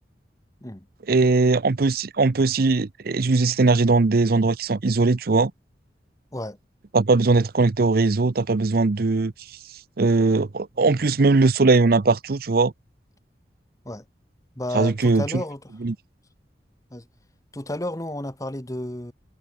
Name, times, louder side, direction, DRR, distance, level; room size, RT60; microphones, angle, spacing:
voice 1, 1.1-5.5 6.9-9.3 10.0-12.7 14.7-15.4 15.8-16.0, right 3 dB, 55° right, 0.6 m, -20 dB
voice 2, 14.6-15.6 16.9-17.0 17.5-19.1, left 1 dB, 20° left, 1.9 m, -32 dB
head